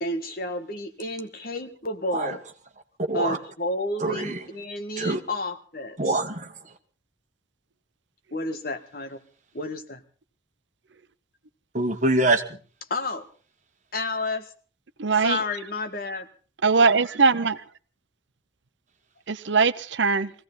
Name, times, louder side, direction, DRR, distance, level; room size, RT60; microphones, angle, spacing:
voice 1, 0.0-2.4 3.1-6.0 8.3-9.2 9.5-10.0 12.9-13.3 13.9-14.5 15.2-16.3, left 2 dB, 50° left, 1.7 m, -31 dB
voice 2, 3.0-3.4 4.0-4.5 5.0-5.2 6.0-6.7 11.7-12.6, right 2 dB, 40° right, 1.6 m, -25 dB
voice 3, 15.0-15.4 16.6-17.6 19.3-20.3, right 4 dB, 70° right, 0.8 m, -21 dB
21.5 x 16.5 x 4.0 m
head